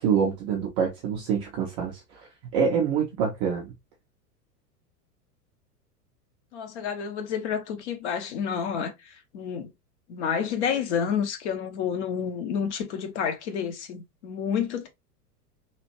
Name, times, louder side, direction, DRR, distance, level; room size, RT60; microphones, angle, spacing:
voice 1, 0.0-2.0 2.5-3.7, right 6 dB, 20° right, 0.4 m, -25 dB
voice 2, 6.5-9.7 10.1-14.9, left 7 dB, 45° left, 0.8 m, -29 dB
3.0 x 2.4 x 2.9 m
figure-of-eight pair, 90°, 47 cm